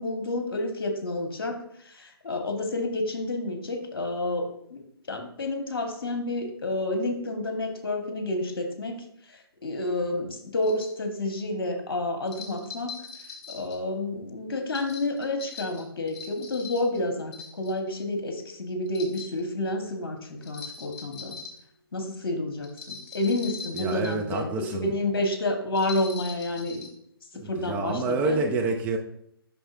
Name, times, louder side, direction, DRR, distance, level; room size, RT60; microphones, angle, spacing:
voice 1, 0.0-1.6 1.8-4.8 5.1-13.0 13.5-21.4 21.9-26.9 27.5-28.4, left 2 dB, 60° left, 4 dB, 1.4 m, -30 dB
sound 1, 10.6-10.9 12.3-13.8 14.7-17.0 17.3-17.9 18.9-19.4 20.4-21.6 22.6-24.3 25.7-26.9, left 5 dB, 35° left, 1.9 m, -41 dB
voice 2, 23.7-24.9 27.3-29.0, right 3 dB, 10° right, 2 dB, 0.4 m, -28 dB
7.7 x 6.0 x 2.6 m, 0.71 s
figure-of-eight pair, 135°, 13 cm